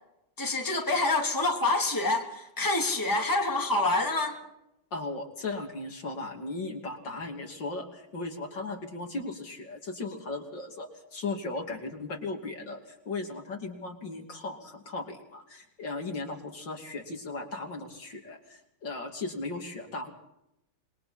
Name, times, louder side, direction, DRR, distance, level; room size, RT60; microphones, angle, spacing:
voice 1, 0.4-4.4, left 2 dB, 10° left, 1 dB, 2.8 m, -27 dB
voice 2, 4.9-20.1, left 3 dB, 60° left, 2 dB, 3.5 m, -37 dB
27.5 x 22.5 x 4.3 m, 0.84 s
omnidirectional pair, 2.3 m